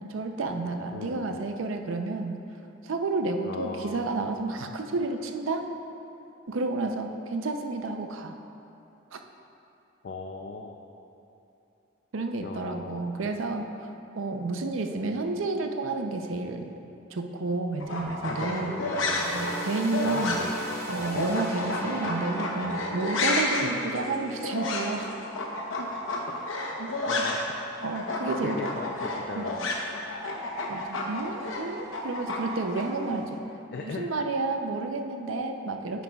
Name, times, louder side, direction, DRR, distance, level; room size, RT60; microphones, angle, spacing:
voice 1, 0.0-2.4 2.8-5.6 6.5-8.3 9.1-9.2 12.1-16.7 17.1-18.7 19.2-20.4 20.9-25.1 25.8-25.9 26.8-26.9 27.2-27.3 27.8-28.6 29.4-29.5 30.7-33.4 33.8-36.0, right 3 dB, 90° right, 5 dB, 0.6 m, -31 dB
voice 2, 0.9-1.4 3.4-4.1 10.0-10.7 12.4-13.1 18.3-19.6 20.0-20.8 23.6-23.9 26.3-26.5 27.0-27.6 28.4-29.7 33.7-34.1, left 4 dB, 55° left, 1 dB, 0.4 m, -38 dB
sound 1, 17.8-27.6 27.8-32.8, left 2 dB, 85° left, 0.9 m, -31 dB
sound 2, 18.6-26.2 26.7-26.8 27.7-27.8, equal, 15° left, 1.0 m, -40 dB
9.2 x 9.0 x 2.3 m, 2.9 s
head